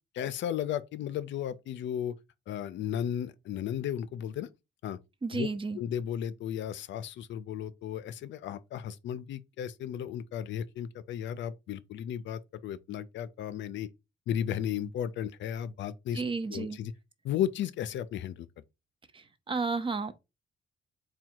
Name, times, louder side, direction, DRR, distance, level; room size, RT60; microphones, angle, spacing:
voice 1, 0.1-2.1 2.5-4.5 4.8-5.0 5.3-5.5 5.7-13.9 14.3-16.2 16.5-16.9 17.2-18.5, left 10 dB, 70° left, 0.4 m, -34 dB
voice 2, 5.2-5.8 16.1-16.8 19.1-20.1, right 4 dB, 25° right, 0.5 m, -32 dB
3.6 x 2.2 x 4.4 m
cardioid pair, 90°, 20 cm